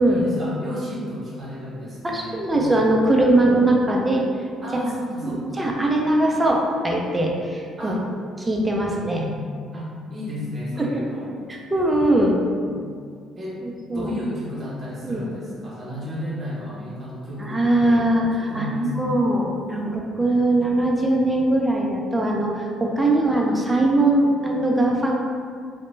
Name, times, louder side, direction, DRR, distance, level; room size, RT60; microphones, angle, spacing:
voice 1, 0.0-3.2 4.6-5.7 7.8-8.1 8.8-9.3 9.7-11.3 12.6-12.8 13.4-13.6 13.9-19.2, equal, 35° right, -6 dB, 0.9 m, -33 dB
voice 2, 2.0-4.2 5.6-8.0 8.4-9.2 10.8-11.0 11.5-12.3 13.6-14.1 15.0-15.3 17.4-25.1, right 1 dB, 15° right, -1 dB, 0.4 m, -21 dB
2.2 x 2.1 x 3.1 m, 2.1 s
supercardioid pair, 80°, 0 cm